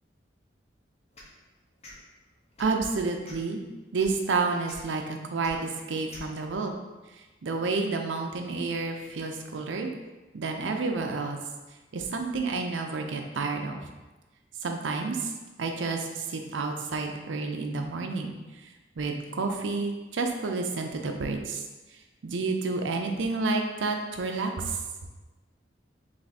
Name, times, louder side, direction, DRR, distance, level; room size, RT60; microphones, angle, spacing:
sound 1, 1.1-1.3 1.8-2.0 2.5-2.8 3.2-3.5 4.0-4.1 4.6-4.8 5.4-5.5 6.1-6.3, left 1 dB, 35° left, 0.8 m, -46 dB
voice 1, 2.6-3.6 3.9-6.8 7.4-9.9 10.3-11.4 11.9-13.8 14.6-15.2 15.6-18.3 19.0-21.6 22.2-24.8, right 3 dB, 80° right, 4 dB, 0.5 m, -30 dB
3.5 x 3.4 x 4.0 m, 1.2 s
head